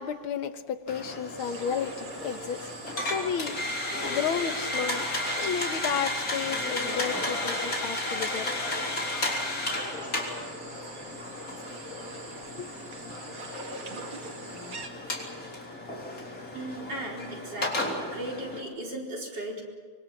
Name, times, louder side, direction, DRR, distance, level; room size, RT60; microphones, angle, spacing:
voice 1, 0.0-2.6 3.0-3.6 4.0-5.1 5.4-8.8 12.4-12.7, left 7 dB, 80° left, 9 dB, 2.0 m, -32 dB
sound 1, 0.9-18.6, left 1 dB, 45° left, 4.2 m, -33 dB
sound 2, 1.4-14.9, right 4 dB, 85° right, 3.2 m, -45 dB
voice 2, 16.5-19.6, right 1 dB, 55° right, -2 dB, 5.2 m, -37 dB
25.0 x 23.5 x 7.3 m, 1.5 s
omnidirectional pair, 2.2 m